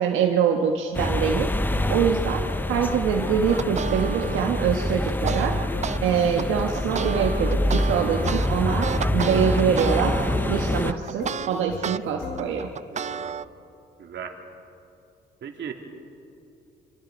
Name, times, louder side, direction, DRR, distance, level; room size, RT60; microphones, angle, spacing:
voice 1, 0.0-1.5 1.9-5.5 6.0-8.9 9.1-10.1 10.5-12.7, right 7 dB, 90° right, 1 dB, 1.4 m, -24 dB
sound 1, 0.9-10.9, left 1 dB, 10° left, 0.7 m, -26 dB
sound 2, 1.7-12.9, left 5 dB, 60° left, 1.7 m, -40 dB
sound 3, 3.5-6.0 6.4-12.0 12.4-13.4, right 7 dB, 35° right, 0.5 m, -31 dB
voice 2, 8.7-9.4 12.9-13.4 14.0-14.4 15.4-15.7, right 7 dB, 65° right, 3 dB, 2.6 m, -37 dB
25.5 x 25.5 x 5.2 m, 2.6 s
cardioid pair, 90°, 20 cm